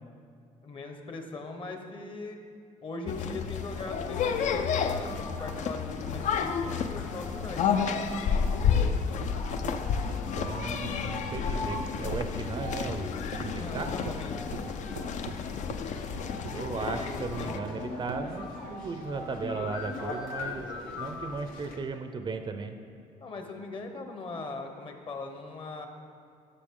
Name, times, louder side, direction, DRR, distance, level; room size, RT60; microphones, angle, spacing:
voice 1, 0.6-2.4 2.8-7.9 13.2-14.5 16.5-17.6 23.2-25.9, left 3 dB, 40° left, 5 dB, 1.0 m, -40 dB
sound 1, 3.1-17.6, left 6 dB, 60° left, 0.5 m, -31 dB
sound 2, 4.0-21.8, left 2 dB, 80° left, 1.1 m, -41 dB
sound 3, 8.4-11.8 12.1-18.8, right 7 dB, 90° right, 0.5 m, -45 dB
voice 2, 10.3-13.9 16.5-20.7 21.0-22.8, right 4 dB, 35° right, 7 dB, 0.5 m, -36 dB
12.0 x 6.5 x 3.7 m, 2.3 s
cardioid pair, 120°, 14 cm